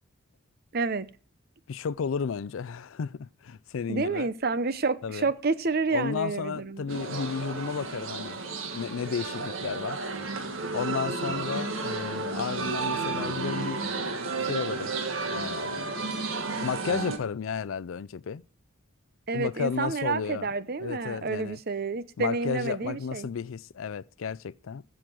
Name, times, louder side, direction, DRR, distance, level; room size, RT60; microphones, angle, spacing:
voice 1, 0.7-1.1 3.9-7.0 19.3-23.3, right 4 dB, 50° right, 0.7 m, -29 dB
voice 2, 1.7-4.3 5.0-5.3 5.9-8.4 8.7-10.0 10.7-13.8 14.4-14.9 15.3-16.0 16.6-18.4 19.3-20.5 20.8-21.6 22.2-24.8, left 6 dB, 80° left, 0.4 m, -33 dB
sound 1, 6.9-17.2, right 3 dB, 80° right, 1.7 m, -32 dB
15.5 x 5.1 x 6.1 m
head